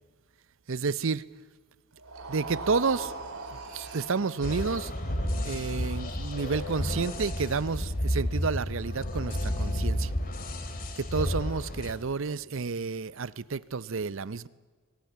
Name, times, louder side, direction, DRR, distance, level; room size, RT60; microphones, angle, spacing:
voice 1, 0.7-1.2 2.3-3.4 3.7-4.9 5.4-10.1 11.0-14.5, right 4 dB, 60° right, 0.6 m, -30 dB
sound 1, 2.0-8.2, right 3 dB, 90° right, 3.9 m, -42 dB
sound 2, 4.4-11.9, equal, 40° left, 2.5 m, -31 dB
25.5 x 18.5 x 9.3 m
head